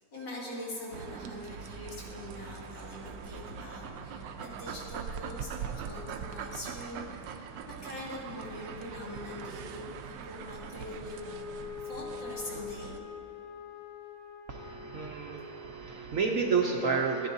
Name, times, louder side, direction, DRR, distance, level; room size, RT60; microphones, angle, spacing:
voice 1, 0.1-7.5 7.8-11.3 11.8-13.0, left 1 dB, 80° left, -6 dB, 3.0 m, -43 dB
sound 1, 0.9-13.0, right 6 dB, 85° right, 1.2 m, -42 dB
Wind instrument woodwind instrument, 11.0-15.6, left 6 dB, 65° left, 1.7 m, -44 dB
voice 2, 14.5-17.3, right 5 dB, 65° right, 1 dB, 0.8 m, -30 dB
14.0 x 10.5 x 2.6 m, 2.6 s
omnidirectional pair, 1.9 m